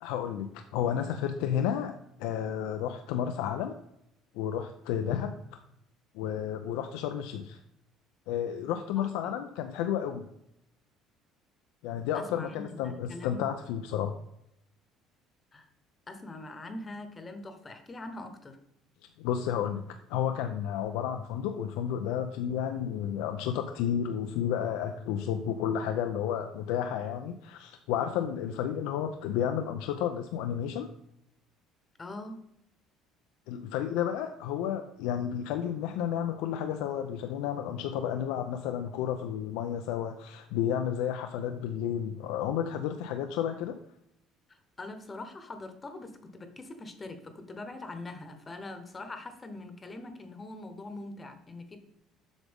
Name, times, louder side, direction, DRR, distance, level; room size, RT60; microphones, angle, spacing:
voice 1, 0.0-1.9 2.2-3.7 4.3-5.3 6.1-7.6 8.3-10.3 11.8-14.1 19.2-30.9 33.5-43.8, left 9 dB, 90° left, 7 dB, 0.5 m, -31 dB
voice 2, 8.9-9.4 12.1-13.4 15.5-15.7 16.1-18.6 32.0-32.4 44.5-51.8, left 2 dB, 20° left, 8 dB, 1.0 m, -43 dB
7.9 x 6.0 x 3.5 m, 0.77 s
cardioid pair, 130°, 0 cm